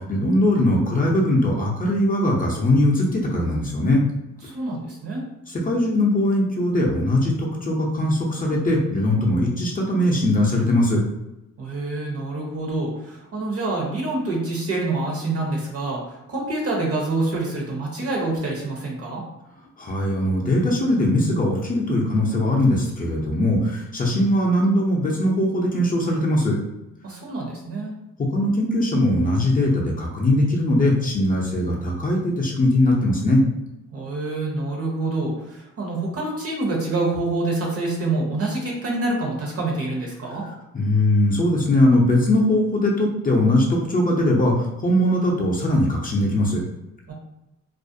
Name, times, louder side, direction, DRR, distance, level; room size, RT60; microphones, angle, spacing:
voice 1, 0.0-4.0 5.5-11.0 19.8-26.6 28.3-33.4 40.7-46.6, left 1 dB, 30° left, -3 dB, 0.5 m, -20 dB
voice 2, 4.4-5.2 11.6-19.2 27.0-27.9 33.9-40.4 47.1-47.2, right 2 dB, 50° right, -1 dB, 0.9 m, -26 dB
2.4 x 2.1 x 2.6 m, 0.92 s
cardioid pair, 90°, 30 cm